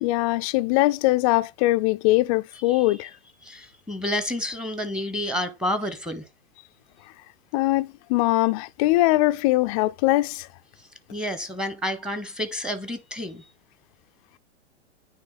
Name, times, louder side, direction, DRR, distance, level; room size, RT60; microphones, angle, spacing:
voice 1, 0.0-3.1 7.5-10.5, left 18 dB, 30° left, 0.4 m, -21 dB
voice 2, 3.4-6.2 11.1-13.4, left 1 dB, ahead, 1.0 m, -30 dB
9.4 x 3.1 x 4.0 m
hypercardioid pair, 110°, 38 cm